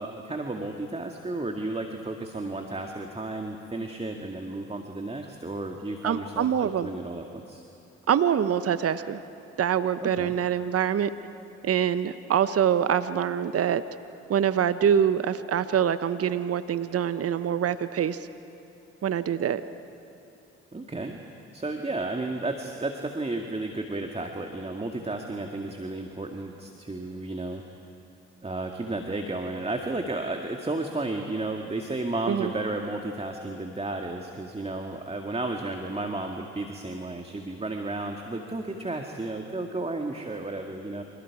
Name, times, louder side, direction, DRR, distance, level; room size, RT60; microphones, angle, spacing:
voice 1, 0.0-7.6 10.0-10.3 20.7-21.2 21.5-27.6 28.4-41.0, right 2 dB, 20° right, 3 dB, 2.0 m, -33 dB
voice 2, 6.0-6.9 8.1-9.2 9.6-11.1 11.6-13.8 14.3-18.2 19.0-19.6 32.3-32.5, right 9 dB, 50° right, 13 dB, 1.0 m, -25 dB
29.5 x 27.0 x 4.9 m, 2.8 s
hypercardioid pair, 45°, 31 cm